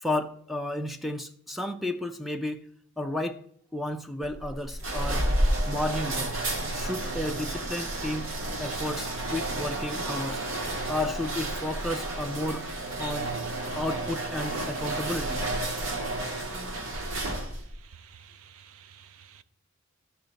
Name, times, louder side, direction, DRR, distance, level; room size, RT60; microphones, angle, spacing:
voice 1, 0.0-2.6 3.0-3.4 3.7-5.3 5.7-6.4 6.7-8.3 8.6-10.4 10.9-12.6 13.0-13.3 13.7-15.4, left 1 dB, ahead, 0.4 m, -32 dB
sound 1, 4.2-17.7, right 1 dB, 70° right, 1.7 m, -31 dB
voice 2, 17.7-19.4, right 7 dB, 90° right, 0.6 m, -52 dB
13.0 x 5.7 x 4.0 m
head